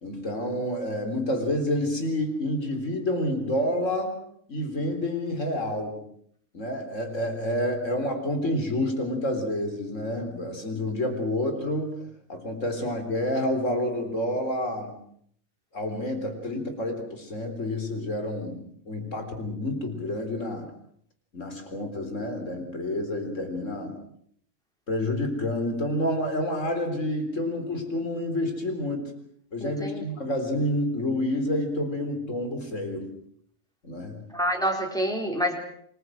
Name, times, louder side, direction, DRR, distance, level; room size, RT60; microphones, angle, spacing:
voice 1, 0.0-4.1 4.5-6.0 6.5-12.0 12.3-14.9 15.7-20.7 21.3-24.0 24.9-29.1 29.5-33.1 33.8-34.2, left 1 dB, 65° left, 5 dB, 4.2 m, -29 dB
voice 2, 29.6-30.0 34.3-35.6, equal, 5° left, 1 dB, 4.1 m, -27 dB
28.0 x 21.0 x 6.3 m, 0.67 s
omnidirectional pair, 1.4 m